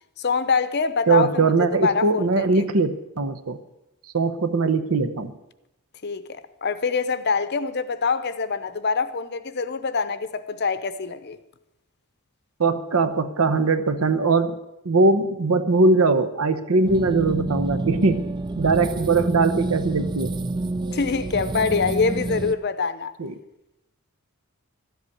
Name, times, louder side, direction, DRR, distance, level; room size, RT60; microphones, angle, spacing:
voice 1, 0.2-1.5 1.8-2.5 6.0-11.4 20.9-23.1, left 5 dB, 50° left, 0.7 m, -25 dB
voice 2, 1.1-3.6 4.1-5.3 12.6-14.6 14.8-18.3 18.6-20.3 23.2-23.3, right 3 dB, 75° right, 0.8 m, -21 dB
sound 1, 16.9-22.5, right 2 dB, 20° right, 0.4 m, -28 dB
13.5 x 8.1 x 8.4 m
head